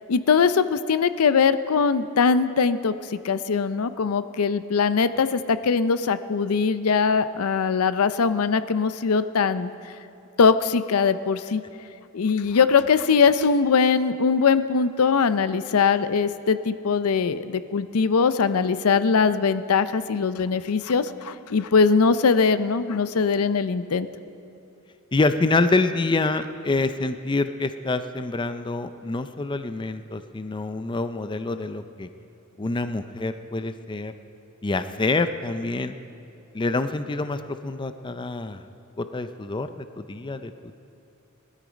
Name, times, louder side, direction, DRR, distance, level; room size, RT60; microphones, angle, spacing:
voice 1, 0.1-9.7 10.4-11.6 12.1-24.1, left 5 dB, 90° left, 13 dB, 0.5 m, -21 dB
voice 2, 25.1-32.1 32.6-34.1 34.6-35.9 36.5-38.6 39.0-40.7, left 3 dB, 20° left, 10 dB, 0.5 m, -26 dB
19.5 x 12.5 x 5.1 m, 2.6 s
head